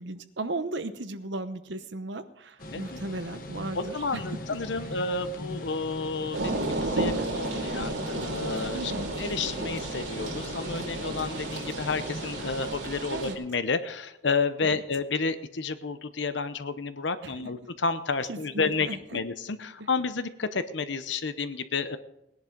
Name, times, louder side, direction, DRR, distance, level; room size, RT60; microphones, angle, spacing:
voice 1, 0.0-4.2 8.7-9.1 13.1-13.4 14.6-14.8 17.2-17.3 18.3-19.2 19.8-19.9, right 2 dB, 70° right, 10 dB, 0.9 m, -36 dB
sound 1, 2.6-12.7, left 1 dB, 45° left, 1.2 m, -41 dB
voice 2, 3.7-22.0, left 4 dB, 70° left, 12 dB, 0.8 m, -31 dB
sound 2, 6.3-13.3, right 2 dB, 85° right, 2.4 m, -32 dB
19.0 x 10.5 x 3.9 m, 0.85 s
head